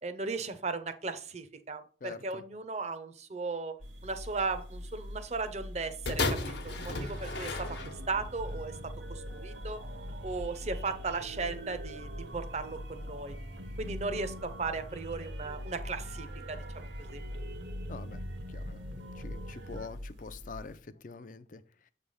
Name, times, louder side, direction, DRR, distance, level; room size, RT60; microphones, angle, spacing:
voice 1, 0.0-9.8 10.2-13.4 13.8-17.2, right 4 dB, 35° right, 0.7 m, -37 dB
voice 2, 2.0-2.4 17.9-18.2 18.5-18.9 19.1-21.9, left 4 dB, 45° left, 0.5 m, -45 dB
sound 1, 3.8-20.8, left 1 dB, 85° right, 1.2 m, -44 dB
sound 2, 6.1-8.3 9.1-9.2, left 3 dB, 65° left, 1.0 m, -34 dB
sound 3, 6.6-19.9, right 1 dB, 65° right, 0.9 m, -45 dB
7.9 x 3.3 x 5.4 m
head